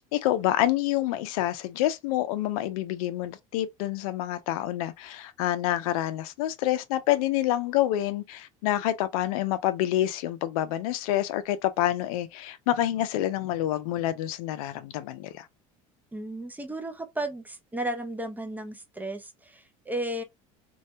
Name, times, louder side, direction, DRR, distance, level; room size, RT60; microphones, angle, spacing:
voice 1, 0.1-15.5, left 13 dB, 85° left, 0.4 m, -27 dB
voice 2, 16.1-20.2, right 1 dB, 10° right, 0.4 m, -34 dB
2.2 x 2.1 x 2.6 m
supercardioid pair, 105°, 18 cm